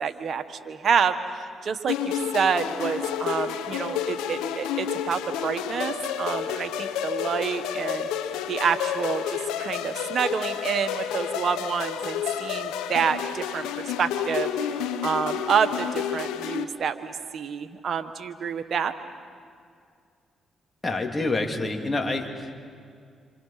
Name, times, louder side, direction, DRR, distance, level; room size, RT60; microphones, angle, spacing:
voice 1, 0.0-8.1 8.5-18.9, right 6 dB, 60° right, 9 dB, 1.6 m, -28 dB
sound 1, 1.9-16.6, left 9 dB, 85° left, 1.1 m, -30 dB
voice 2, 20.8-22.5, left 2 dB, 25° left, 3 dB, 3.3 m, -27 dB
28.0 x 26.5 x 6.0 m, 2.2 s
supercardioid pair, 55°, 0 cm